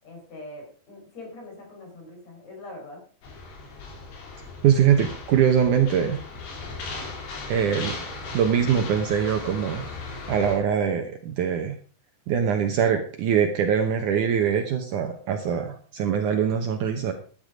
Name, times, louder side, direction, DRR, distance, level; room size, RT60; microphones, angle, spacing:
voice 1, 0.0-3.0, left 2 dB, 45° left, 0 dB, 6.0 m, -42 dB
sound 1, 3.2-10.6, left 3 dB, 85° left, 5.2 m, -37 dB
voice 2, 4.6-6.2 7.5-8.0 8.3-9.8 10.3-11.8 12.3-17.1, right 8 dB, 70° right, 6 dB, 2.1 m, -23 dB
13.0 x 10.0 x 5.0 m, 0.43 s
omnidirectional pair, 4.4 m